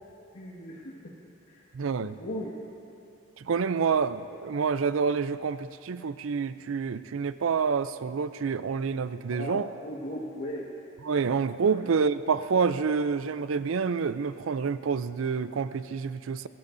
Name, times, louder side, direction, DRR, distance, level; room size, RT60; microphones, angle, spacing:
voice 1, 0.3-0.9 1.5-1.6 2.0-2.5 9.3-10.7 11.6-11.7, equal, 75° left, -7 dB, 1.7 m, -37 dB
voice 2, 1.7-2.2 3.4-9.7 11.0-16.5, right 5 dB, 75° right, 13 dB, 0.5 m, -28 dB
22.5 x 16.5 x 2.6 m, 2.6 s
head